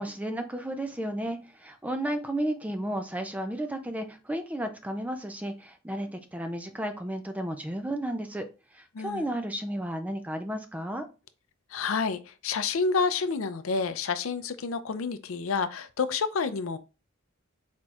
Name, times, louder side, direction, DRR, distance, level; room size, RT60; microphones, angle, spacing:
voice 1, 0.0-8.5 8.7-11.1, right 1 dB, 5° right, 0.4 m, -33 dB
voice 2, 8.9-9.3 11.7-16.8, left 5 dB, 70° left, 0.5 m, -29 dB
4.4 x 4.2 x 2.4 m
head